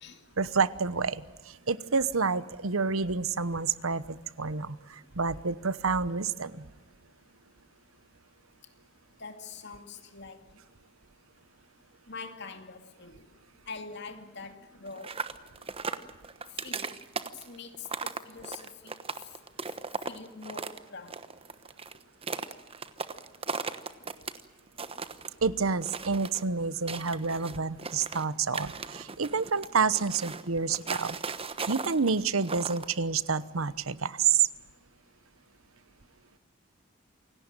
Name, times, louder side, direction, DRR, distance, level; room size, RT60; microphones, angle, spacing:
voice 1, 0.4-6.7 25.4-31.2 31.7-34.5, right 5 dB, 90° right, 16 dB, 1.0 m, -29 dB
voice 2, 9.2-10.4 12.1-13.3 13.7-15.2 16.6-17.0 17.5-18.9 20.1-21.2, left 4 dB, 55° left, 7 dB, 2.6 m, -44 dB
sound 1, 14.9-20.8 21.1-24.4 24.7-25.3 25.8-26.4 26.9-28.2 28.5-32.9, right 4 dB, 30° right, 1.1 m, -37 dB
28.0 x 17.5 x 9.0 m, 1.2 s
head